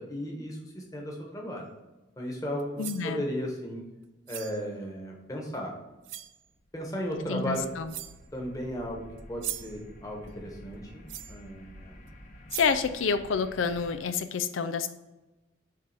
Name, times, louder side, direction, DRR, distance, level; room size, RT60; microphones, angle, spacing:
voice 1, 0.0-1.7 2.2-3.9 4.3-5.7 6.7-7.7 8.3-12.0, equal, 20° left, -1 dB, 1.3 m, -35 dB
sound 1, 2.6-3.1 4.3-4.6 5.5-5.6 6.0-6.4 7.4-7.5 7.9-8.3 9.2-9.8 11.1-11.4 12.1-12.2 12.5-12.8, right 13 dB, 75° right, 0.4 m, -39 dB
voice 2, 2.8-3.2 7.3-7.9 12.5-14.9, left 5 dB, 85° left, 9 dB, 0.5 m, -28 dB
sound 2, 5.6-14.0, left 1 dB, 40° left, 0.9 m, -50 dB
7.5 x 3.5 x 5.0 m, 1.1 s
head